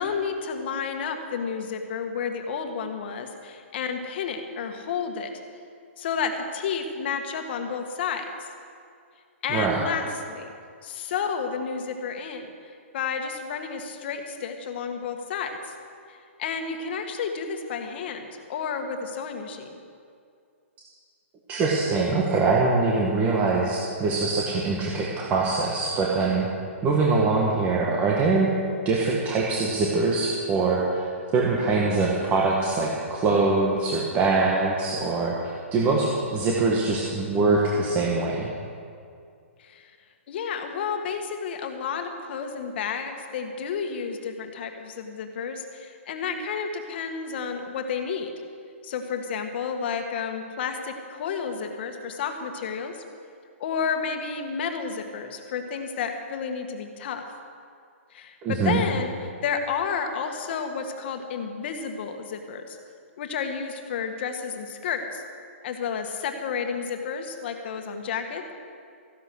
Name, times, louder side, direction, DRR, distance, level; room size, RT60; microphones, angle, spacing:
voice 1, 0.0-5.3 6.0-8.3 9.4-10.5 10.8-12.5 12.9-15.6 16.1-19.8 39.6-39.8 40.3-48.3 48.8-52.9 53.6-57.2 58.1-62.8 63.2-65.2 65.6-68.5, left 6 dB, 50° left, 5 dB, 1.8 m, -31 dB
voice 2, 9.5-9.8 21.5-26.5 26.8-28.5 28.8-31.0 31.3-35.4 35.7-38.5 58.4-58.8, right 3 dB, 20° right, -3 dB, 1.7 m, -23 dB
15.0 x 11.0 x 6.5 m, 2.3 s
hypercardioid pair, 150°, 7 cm